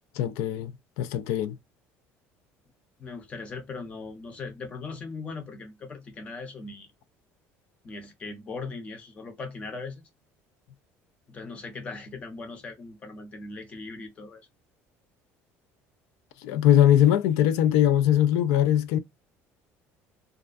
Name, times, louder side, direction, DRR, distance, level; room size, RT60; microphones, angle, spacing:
voice 1, 0.2-0.7 1.0-1.6 16.4-19.0, left 11 dB, 85° left, 0.3 m, -21 dB
voice 2, 3.0-6.9 7.8-10.1 11.3-14.4, left 3 dB, 25° left, 0.6 m, -39 dB
2.4 x 2.2 x 2.4 m
cardioid pair, 175°, 6 cm